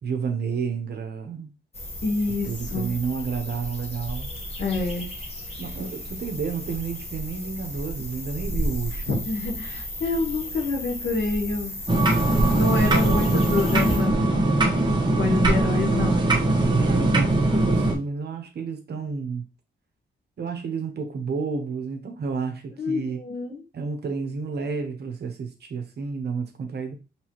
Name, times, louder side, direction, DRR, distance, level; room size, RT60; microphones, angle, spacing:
voice 1, 0.0-1.5 2.4-4.3 5.6-9.2 12.4-13.4 16.9-19.5 20.4-23.2 23.7-27.0, right 5 dB, 60° right, 0.9 m, -31 dB
sound 1, 1.7-14.0, equal, 30° left, 1.2 m, -34 dB
voice 2, 2.0-2.9 4.6-5.1 9.1-11.8 12.5-14.2 15.1-16.4 22.8-23.6, left 3 dB, 70° left, 1.3 m, -27 dB
sound 2, 11.9-18.0, right 2 dB, 25° right, 1.1 m, -21 dB
4.6 x 3.3 x 3.0 m
cardioid pair, 95°, 19 cm